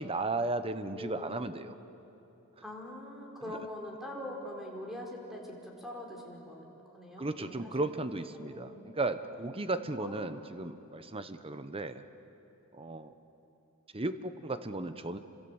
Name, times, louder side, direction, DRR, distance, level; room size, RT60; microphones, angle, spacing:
voice 1, 0.0-1.7 3.5-3.6 7.2-12.0 12.7-13.1 13.9-15.2, right 2 dB, 25° right, 10 dB, 1.0 m, -35 dB
voice 2, 0.9-1.3 2.6-7.7 8.3-8.8 10.0-10.4, left 1 dB, ahead, -1 dB, 4.5 m, -43 dB
28.5 x 25.5 x 8.0 m, 3.0 s
head